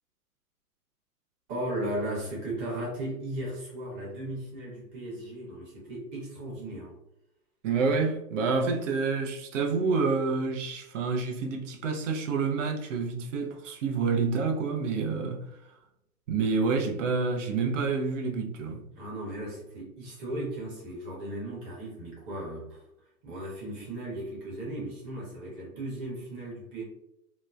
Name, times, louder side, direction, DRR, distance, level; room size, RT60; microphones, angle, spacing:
voice 1, 1.5-7.0 18.9-22.8 23.2-26.8, right 1 dB, 25° right, 1.0 m, -36 dB
voice 2, 7.6-15.8 16.3-18.8, right 4 dB, 50° right, 0.6 m, -28 dB
2.9 x 2.0 x 2.3 m
hypercardioid pair, 135°, 47 cm